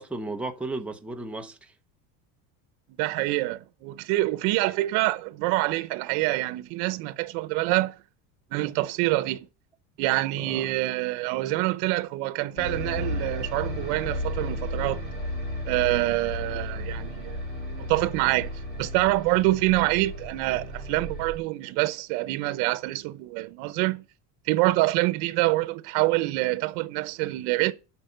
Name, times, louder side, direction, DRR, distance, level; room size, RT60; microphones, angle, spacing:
voice 1, 0.0-1.7 10.4-10.7 14.7-15.0, right 2 dB, 5° right, 0.7 m, -35 dB
voice 2, 3.0-7.9 8.5-9.4 10.0-15.0 15.7-17.4 17.7-18.5 18.8-24.0 24.4-27.7, right 19 dB, 75° right, 0.9 m, -26 dB
sound 1, 12.6-21.4, left 1 dB, 25° left, 4.8 m, -34 dB
8.3 x 5.7 x 7.9 m
cardioid pair, 150°, 39 cm